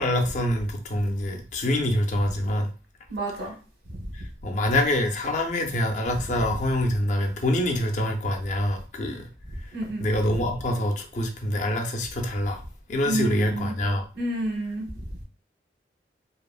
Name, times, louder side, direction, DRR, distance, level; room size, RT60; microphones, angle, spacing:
voice 1, 0.0-2.7 4.1-9.3 10.0-12.6 12.9-14.0, left 1 dB, 40° left, 0.4 m, -25 dB
voice 2, 3.1-3.5 9.7-10.1 13.0-13.7 14.2-14.9, right 1 dB, 85° right, 1.0 m, -29 dB
2.8 x 2.0 x 2.3 m
head